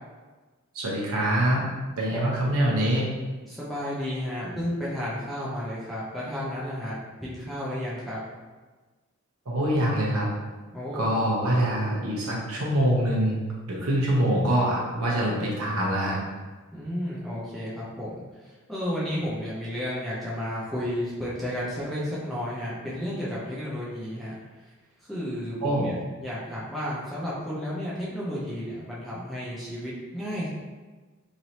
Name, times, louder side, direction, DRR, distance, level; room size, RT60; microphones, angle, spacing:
voice 1, 0.7-3.0 9.5-10.3 10.9-13.4 13.7-16.2 25.6-25.9, right 1 dB, 90° right, -4 dB, 0.8 m, -24 dB
voice 2, 3.5-8.2 10.7-11.1 14.0-14.3 16.7-18.1 18.4-24.3 25.1-30.5, equal, ahead, -8 dB, 0.5 m, -32 dB
3.1 x 2.7 x 2.8 m, 1.3 s
head